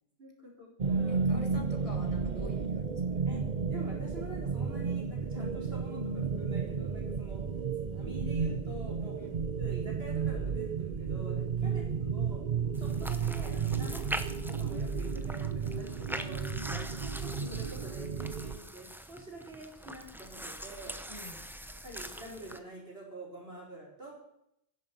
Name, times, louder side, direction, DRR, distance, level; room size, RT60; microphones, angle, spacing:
voice 1, 0.2-1.2 3.2-3.4 3.7-6.0 6.3-7.4 7.8-11.8 12.1-12.4 12.8-16.5 17.0-20.9 21.8-24.1, right 2 dB, 65° right, -3 dB, 4.9 m, -47 dB
sound 1, 0.8-18.6, right 5 dB, 45° right, 1.0 m, -33 dB
voice 2, 1.1-3.5 9.2-9.4 11.6-11.8 16.6-16.9 21.1-21.5, left 1 dB, 30° left, 3 dB, 1.8 m, -47 dB
sound 2, 12.7-22.6, equal, ahead, 0.7 m, -43 dB
11.5 x 10.5 x 7.5 m, 0.79 s
omnidirectional pair, 1.1 m